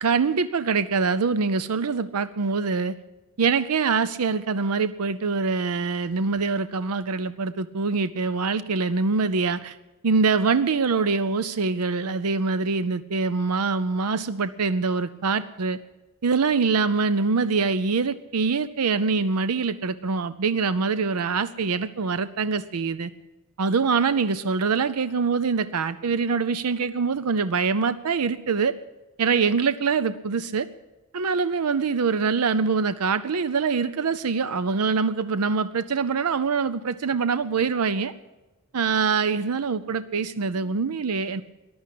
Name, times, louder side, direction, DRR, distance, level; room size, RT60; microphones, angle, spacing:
voice 1, 0.0-3.0 3.4-9.8 10.0-15.8 16.2-23.1 23.6-28.7 29.2-30.7 31.1-38.1 38.7-41.4, right 5 dB, 90° right, 14 dB, 0.6 m, -24 dB
14.5 x 11.0 x 8.4 m, 1.1 s
head